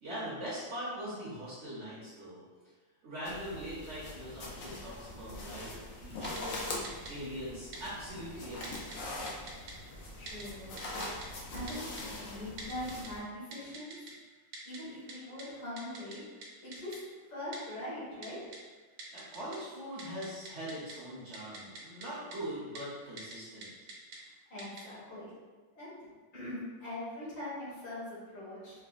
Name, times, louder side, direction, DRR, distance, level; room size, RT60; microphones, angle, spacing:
voice 1, 0.0-2.4 3.0-6.6 7.1-9.0 19.1-23.7, equal, 50° right, -9 dB, 1.0 m, -42 dB
sound 1, 3.2-13.2, left 2 dB, 65° left, 0.8 m, -42 dB
Typing, 6.2-6.4 6.8-7.1 7.7-7.8 8.6-9.0 9.3-9.7 10.3-10.4 10.8-11.3 11.7-12.0 12.6-13.1 13.5-14.1 14.5-14.8 15.1-15.2 15.4-15.5 15.8-16.2 16.4-16.5 16.7-17.0 17.5-17.6 18.2-18.6 19.0-19.6 19.9-20.9 21.3-22.1 22.3-22.4 22.8-22.9 23.2-23.4 23.6-24.2 24.6-24.8, right 3 dB, 80° right, 1.3 m, -45 dB
voice 2, 10.2-10.7 11.5-14.0 14.7-16.2 16.6-17.0 17.3-18.4 24.5-25.3 25.7-28.7, left 1 dB, 85° left, -11 dB, 2.4 m, -42 dB
4.7 x 2.1 x 2.5 m, 1.3 s
omnidirectional pair, 2.0 m